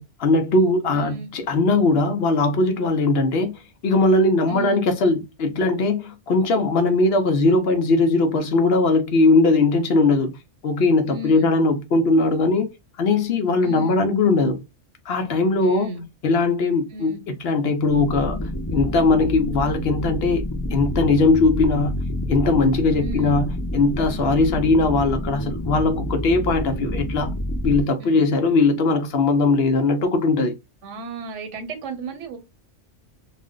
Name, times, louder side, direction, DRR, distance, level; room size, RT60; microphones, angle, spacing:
voice 1, 0.0-3.5 3.8-10.3 10.6-12.7 13.0-14.6 15.1-15.9 16.2-17.1 17.4-18.4 18.7-20.4 20.7-22.0 22.3-27.3 27.6-30.5, left 3 dB, 65° left, 0.8 m, -19 dB
voice 2, 0.9-1.3 4.5-4.8 11.1-11.5 13.6-14.0 15.6-16.1 16.9-17.2 23.0-23.3 28.0-28.2 30.8-32.4, right 2 dB, 80° right, 1.1 m, -34 dB
sound 1, 17.9-27.8, left 1 dB, 25° left, 0.4 m, -28 dB
2.5 x 2.0 x 3.6 m
omnidirectional pair, 1.2 m